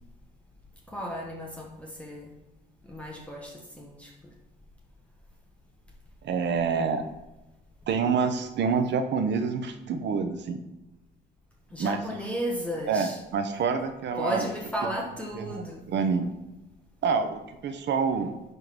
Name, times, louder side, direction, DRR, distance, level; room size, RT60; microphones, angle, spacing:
voice 1, 0.9-2.3 2.9-4.1 11.7-13.2 14.2-15.8, equal, 5° left, -1 dB, 1.3 m, -34 dB
voice 2, 6.2-7.0 7.9-10.6 11.8-12.0 12.9-14.5 15.3-15.6 15.9-16.3 17.0-18.3, right 5 dB, 65° right, 8 dB, 0.9 m, -27 dB
11.0 x 3.8 x 6.1 m, 0.99 s
cardioid pair, 110°, 19 cm